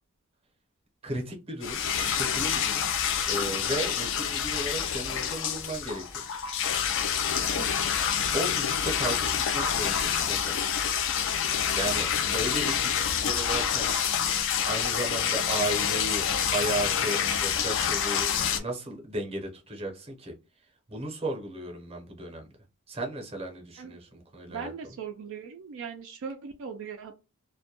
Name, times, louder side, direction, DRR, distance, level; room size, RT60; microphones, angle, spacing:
voice 1, 1.0-2.9 3.3-6.0 8.3-10.6 11.8-13.9 14.6-18.3 18.6-20.3 20.9-22.4 22.9-24.7, right 1 dB, 25° right, 0.7 m, -35 dB
sound 1, 1.6-18.6, left 8 dB, 60° left, 0.4 m, -27 dB
voice 2, 24.5-27.1, right 6 dB, 60° right, 0.3 m, -39 dB
2.2 x 2.1 x 2.8 m
head